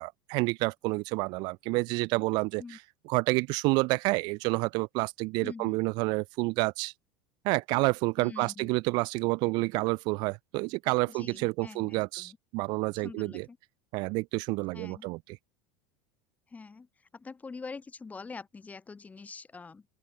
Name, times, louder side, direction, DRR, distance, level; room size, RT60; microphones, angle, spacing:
voice 1, 0.0-2.8 3.1-6.9 7.4-13.5 13.9-15.4, right 26 dB, 60° right, 0.5 m, -29 dB
voice 2, 5.4-5.8 8.2-8.7 11.1-12.4 12.9-13.6 14.7-15.1 16.5-16.9 17.1-19.9, left 4 dB, 20° left, 4.9 m, -44 dB
open air
supercardioid pair, 115°, 8 cm